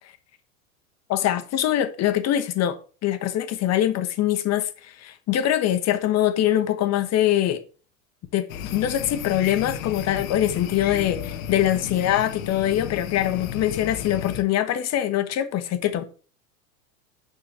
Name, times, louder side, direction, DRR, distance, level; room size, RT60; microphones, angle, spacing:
voice 1, 1.1-7.6 8.3-8.4 8.7-16.0, left 12 dB, 40° left, 1.4 m, -23 dB
sound 1, 8.5-14.4, left 8 dB, 75° left, 1.2 m, -33 dB
7.2 x 5.4 x 6.8 m
hypercardioid pair, 105°, 41 cm